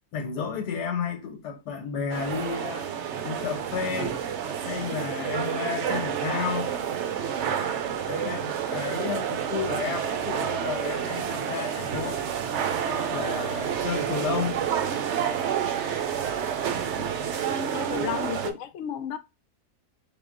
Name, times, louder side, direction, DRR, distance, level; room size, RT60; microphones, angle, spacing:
voice 1, 0.1-2.9 3.2-4.2 4.6-6.7 8.1-12.2 12.9-14.6, left 6 dB, 90° left, 1.6 m, -32 dB
sound 1, 2.1-18.5, right 8 dB, 65° right, 0.7 m, -29 dB
voice 2, 17.7-19.2, left 9 dB, 70° left, 0.7 m, -32 dB
3.9 x 2.9 x 3.8 m
omnidirectional pair, 1.7 m